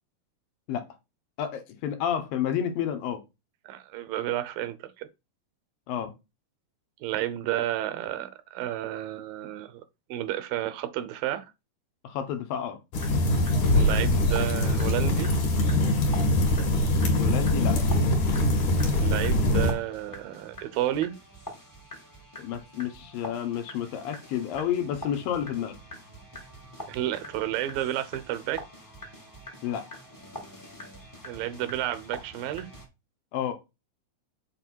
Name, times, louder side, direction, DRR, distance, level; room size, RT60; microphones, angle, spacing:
voice 1, 1.4-3.2 5.9-6.1 12.0-12.8 17.2-17.8 22.4-25.8 29.6-29.8 33.3-33.5, left 9 dB, 75° left, 2.8 m, -30 dB
voice 2, 3.7-5.1 7.0-9.8 10.1-11.5 13.7-15.3 19.0-21.1 26.9-28.6 31.3-32.7, right 13 dB, 80° right, 2.5 m, -31 dB
sound 1, 12.9-19.7, left 1 dB, 60° left, 3.0 m, -23 dB
sound 2, 13.0-32.9, equal, 15° left, 0.7 m, -45 dB
7.8 x 4.2 x 4.5 m
omnidirectional pair, 4.2 m